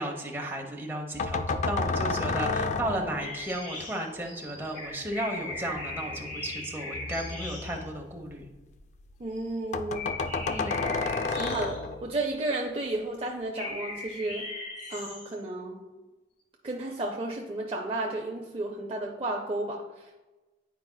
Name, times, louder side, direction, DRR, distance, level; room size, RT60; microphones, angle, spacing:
voice 1, 0.0-8.5 10.5-11.1, right 1 dB, 15° right, 0 dB, 0.8 m, -34 dB
sound 1, 1.1-3.5 5.5-8.8 9.1-9.2 9.5-9.6 9.7-12.2, left 3 dB, 40° left, 0.3 m, -32 dB
sound 2, 3.2-7.9 9.4-9.6 9.9-12.1 13.5-15.4, left 2 dB, 70° left, 2.1 m, -39 dB
voice 2, 9.2-10.1 11.3-14.5 14.9-15.8 16.6-20.2, right 2 dB, 30° right, 0 dB, 0.5 m, -33 dB
9.3 x 4.8 x 2.2 m, 1.1 s
head